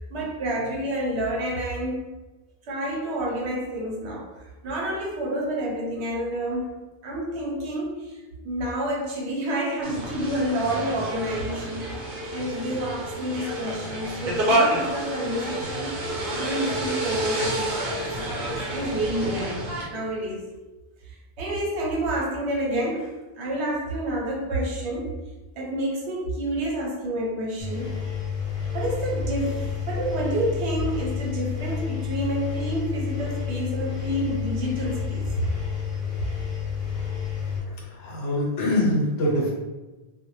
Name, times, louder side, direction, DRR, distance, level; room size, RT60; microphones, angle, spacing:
voice 1, 0.0-2.1 2.7-11.9 12.3-16.0 16.3-19.6 19.9-20.5 21.0-25.2 25.6-28.0 28.7-35.3, right 1 dB, 85° right, -2 dB, 0.9 m, -29 dB
sound 1, 9.8-19.8, right 1 dB, 60° right, 0.8 m, -29 dB
Engine, 27.6-37.6, left 7 dB, 35° left, 0.9 m, -30 dB
voice 2, 37.9-39.5, left 1 dB, 70° left, -3 dB, 0.9 m, -24 dB
2.1 x 2.0 x 3.1 m, 1.1 s
omnidirectional pair, 1.1 m